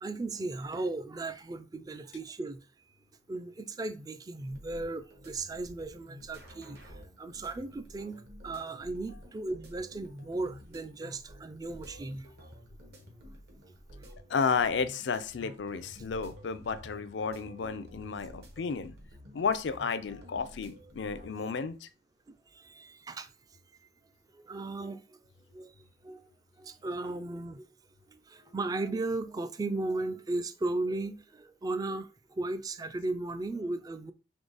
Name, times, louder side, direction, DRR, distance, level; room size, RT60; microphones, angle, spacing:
voice 1, 0.0-2.6 3.3-12.3 14.0-14.1 16.0-16.1 22.3-23.3 24.3-25.2 25.5-25.7 26.0-26.2 26.6-27.7 28.1-34.1, right 2 dB, 20° right, 0.3 m, -36 dB
sound 1, 4.5-21.3, equal, 60° right, 1.2 m, -51 dB
voice 2, 14.3-18.9 19.3-21.9, left 5 dB, 80° left, 0.4 m, -32 dB
3.6 x 3.2 x 3.9 m
head